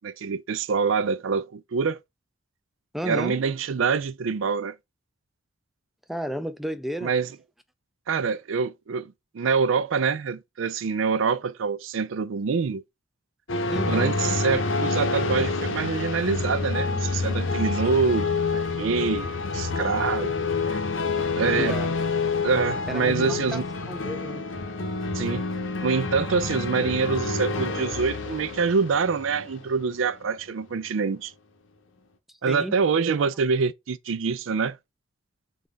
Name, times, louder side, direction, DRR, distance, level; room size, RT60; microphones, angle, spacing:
voice 1, 0.0-2.0 3.0-4.7 7.0-7.3 8.1-12.8 13.9-20.8 21.3-21.8 22.4-23.6 25.1-25.4 25.8-31.3 32.4-34.8, right 5 dB, 80° right, 0.4 m, -25 dB
voice 2, 2.9-3.4 6.1-7.1 13.7-14.2 21.6-21.9 22.9-23.6 23.9-24.4 32.5-32.7 33.2-33.3, equal, ahead, 0.4 m, -32 dB
sound 1, 13.5-30.3, left 3 dB, 75° left, 0.8 m, -28 dB
5.4 x 2.4 x 3.3 m
head